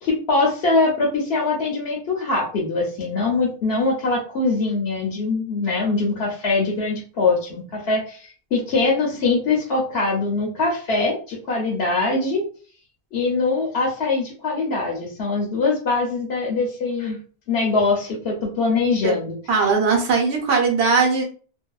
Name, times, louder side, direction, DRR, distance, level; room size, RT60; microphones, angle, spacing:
voice 1, 0.0-12.4 13.1-17.2 17.5-19.7, left 3 dB, 75° left, -2 dB, 0.9 m, -22 dB
voice 2, 19.5-21.2, right 5 dB, 80° right, 1 dB, 1.0 m, -19 dB
2.5 x 2.1 x 2.3 m, 0.41 s
omnidirectional pair, 1.1 m